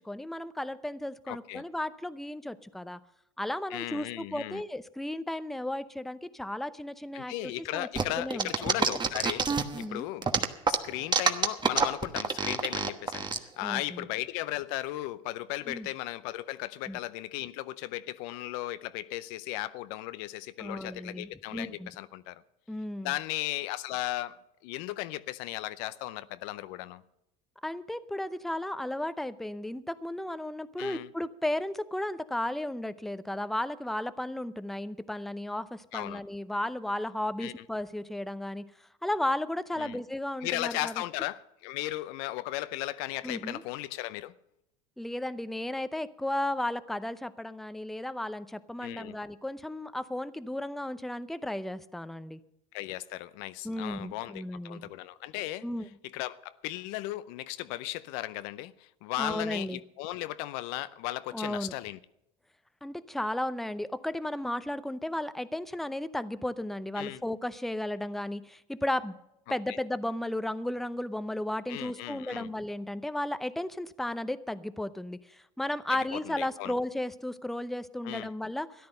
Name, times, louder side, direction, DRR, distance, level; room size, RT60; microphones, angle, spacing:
voice 1, 0.0-3.0 3.4-7.9 8.2-8.5 9.7-10.1 13.6-14.1 15.7-15.9 16.9-17.0 20.6-21.9 22.7-23.1 27.6-38.7 39.0-41.0 43.2-43.6 45.0-52.4 53.6-54.9 55.6-55.9 59.2-59.8 61.3-61.7 62.8-69.1 69.5-78.9, left 1 dB, ahead, 0.6 m, -34 dB
voice 2, 1.3-1.6 3.7-4.6 7.1-10.3 10.7-22.4 23.0-27.0 30.8-31.1 35.9-36.2 37.4-37.6 39.8-40.0 40.4-44.3 48.8-49.2 52.7-55.7 56.0-62.0 67.0-67.2 69.7-69.8 71.7-72.5 76.1-76.8 78.0-78.3, left 16 dB, 70° left, 0.6 m, -36 dB
sound 1, 8.0-9.8 10.2-13.4, right 5 dB, 25° right, 1.1 m, -26 dB
13.5 x 10.5 x 6.7 m
hypercardioid pair, 85°, 17 cm